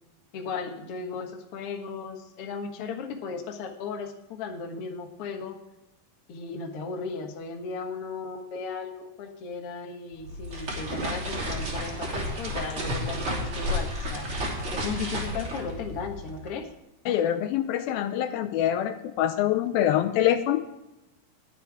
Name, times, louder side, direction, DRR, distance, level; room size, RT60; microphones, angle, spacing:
voice 1, 0.3-5.6 6.3-14.3 14.7-16.7, left 5 dB, 60° left, 3 dB, 1.5 m, -36 dB
sound 1, 10.1-16.5, equal, 35° right, 3.3 m, -32 dB
voice 2, 17.1-20.6, left 11 dB, 80° left, 9 dB, 2.3 m, -25 dB
21.0 x 7.0 x 3.6 m, 0.94 s
omnidirectional pair, 4.6 m